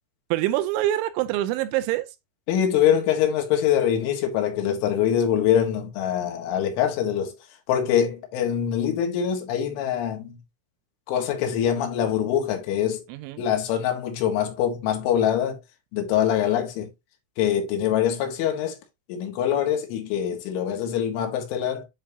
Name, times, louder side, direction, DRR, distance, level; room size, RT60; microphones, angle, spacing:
voice 1, 0.3-2.1 13.1-13.4, right 14 dB, 85° right, 3.0 m, -25 dB
voice 2, 2.5-7.4 7.7-10.4 11.1-13.0 13.4-15.6 15.9-16.9 17.4-18.8 19.1-21.9, left 9 dB, 80° left, 3.8 m, -24 dB
10.0 x 3.5 x 2.7 m
omnidirectional pair, 5.6 m